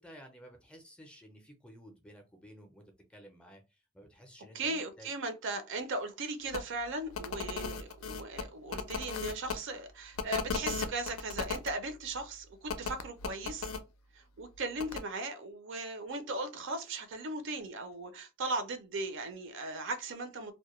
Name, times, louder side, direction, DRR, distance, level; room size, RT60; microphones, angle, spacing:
voice 1, 0.0-5.1, equal, 5° left, 0.5 m, -54 dB
voice 2, 4.5-13.7 14.1-20.5, right 2 dB, 65° right, 0.5 m, -38 dB
sound 1, 6.5-6.6 7.1-9.5 10.2-11.7 12.7-13.8 14.8-15.0, left 5 dB, 80° left, 0.4 m, -36 dB
2.2 x 2.1 x 2.9 m
head